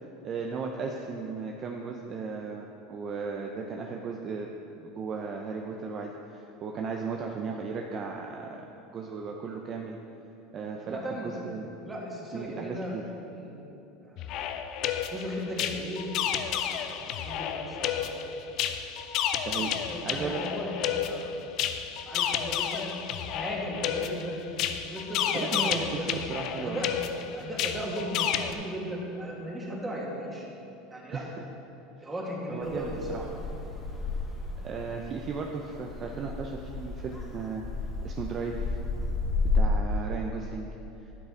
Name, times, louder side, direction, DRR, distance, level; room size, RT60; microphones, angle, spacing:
voice 1, 0.2-4.5 4.8-8.6 8.9-10.0 10.5-11.7 12.3-13.0 19.4-19.7 20.0-20.4 25.3-26.8 31.1-31.4 32.0-32.1 32.5-33.3 34.6-37.6 38.0-38.8 39.5-40.7, right 5 dB, 40° right, 1 dB, 0.7 m, -36 dB
voice 2, 10.8-11.4 11.8-12.9 13.3-13.7 14.0-14.3 14.6-14.7 15.1-16.1 16.6-18.2 19.9-21.3 22.1-22.9 23.3-24.4 24.8-26.1 26.6-26.9 27.3-30.4 30.9-31.2 32.0-33.1, right 1 dB, 15° right, -3 dB, 2.2 m, -36 dB
sound 1, 14.2-28.5, left 9 dB, 55° left, 0.5 m, -31 dB
sound 2, 32.6-39.6, left 4 dB, 15° left, 1.9 m, -33 dB
11.5 x 6.4 x 3.9 m, 3.0 s
hypercardioid pair, 95°, 0 cm